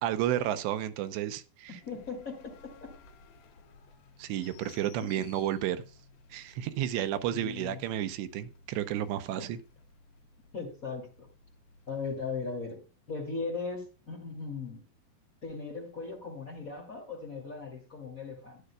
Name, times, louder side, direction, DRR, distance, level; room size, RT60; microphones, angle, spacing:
voice 1, 0.0-1.7 4.2-5.8 6.3-9.6, right 11 dB, 80° right, 2.9 m, -32 dB
sound 1, 1.8-12.8, left 4 dB, 75° left, 3.5 m, -57 dB
voice 2, 1.8-2.7 5.2-5.3 7.2-7.8 9.4-9.5 10.5-11.3 11.9-14.8 15.4-18.6, left 4 dB, 25° left, 2.1 m, -38 dB
13.5 x 11.0 x 2.3 m
omnidirectional pair, 5.1 m